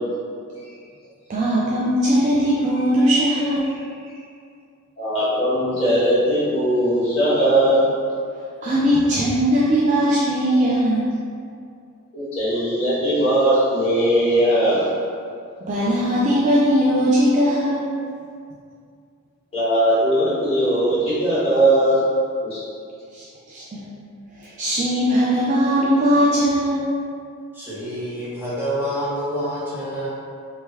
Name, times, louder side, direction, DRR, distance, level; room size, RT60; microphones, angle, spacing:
voice 1, 1.3-3.8 8.6-11.1 15.7-17.9 23.1-23.8 24.4-26.8, equal, 35° right, -8 dB, 0.3 m, -19 dB
voice 2, 5.0-7.9 12.1-14.9 19.5-22.0 22.4-22.6, right 1 dB, 30° left, -13 dB, 1.2 m, -19 dB
voice 3, 27.5-30.1, equal, 10° right, -10 dB, 0.7 m, -27 dB
3.2 x 2.2 x 3.3 m, 2.3 s
head